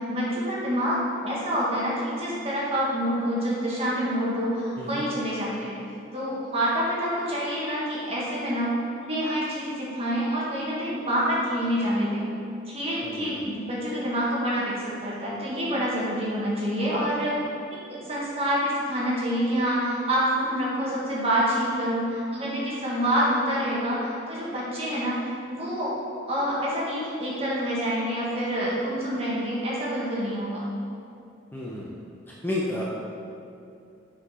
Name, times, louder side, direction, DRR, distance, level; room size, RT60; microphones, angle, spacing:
voice 1, 0.1-1.0 1.2-5.7 6.1-8.7 9.0-12.2 12.7-17.4 17.7-17.8 18.1-25.2 25.5-25.9 26.3-30.6, equal, 30° right, -6 dB, 1.5 m, -27 dB
voice 2, 13.0-13.5 31.5-32.0 32.3-32.9, left 1 dB, 10° left, -5 dB, 0.6 m, -32 dB
7.0 x 4.5 x 4.3 m, 2.5 s
head